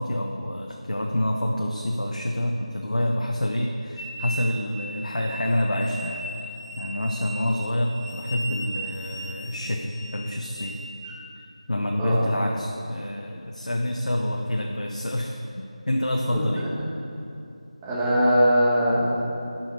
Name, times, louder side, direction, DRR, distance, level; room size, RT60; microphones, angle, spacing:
voice 1, 0.0-6.3 6.8-10.8 11.7-16.7, left 1 dB, 90° left, 0 dB, 0.9 m, -27 dB
sound 1, 4.0-11.2, right 1 dB, 25° left, 1.6 m, -38 dB
voice 2, 17.8-19.2, equal, 15° right, -9 dB, 1.7 m, -21 dB
15.5 x 5.7 x 4.7 m, 2.6 s
figure-of-eight pair, 170°, 4 cm